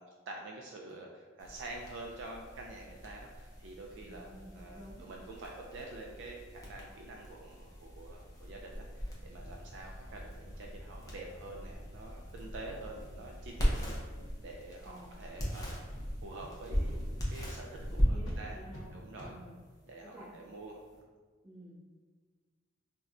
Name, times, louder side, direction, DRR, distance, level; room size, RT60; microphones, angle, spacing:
voice 1, 0.0-14.0 14.4-15.8 16.2-18.6 18.9-19.3 19.9-20.8, right 2 dB, 65° right, 0 dB, 0.3 m, -47 dB
sound 1, 1.4-21.0, equal, 20° left, 0.6 m, -39 dB
voice 2, 4.0-5.1 14.8-15.1 17.9-19.6 20.0-20.3 21.4-21.8, equal, 20° right, -12 dB, 1.5 m, -51 dB
sound 2, 9.0-9.1 9.5-9.6 10.0-10.2 10.5-10.6 11.0-11.1 11.5-11.7 12.0-12.1 12.5-12.6 13.0-13.1 13.5-13.8 14.4-14.5 14.9-15.1 15.4-15.5 15.9-16.0 16.4-16.5 16.9-17.0 17.3-17.5 17.8-17.9 18.2-18.4 18.7-18.8 19.2-19.3, equal, 90° left, 0.7 m, -52 dB
4.0 x 2.1 x 2.4 m, 1.5 s
head